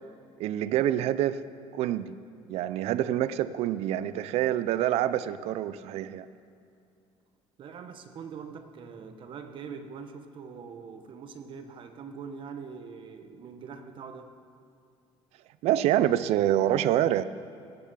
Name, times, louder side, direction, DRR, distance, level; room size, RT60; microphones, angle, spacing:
voice 1, 0.4-1.4 1.7-2.1 2.5-6.3 15.6-17.2, right 12 dB, 65° right, 15 dB, 0.4 m, -26 dB
voice 2, 7.6-14.3, right 6 dB, 45° right, 8 dB, 1.0 m, -43 dB
17.0 x 6.8 x 6.8 m, 2.5 s
cardioid pair, 130°, 12 cm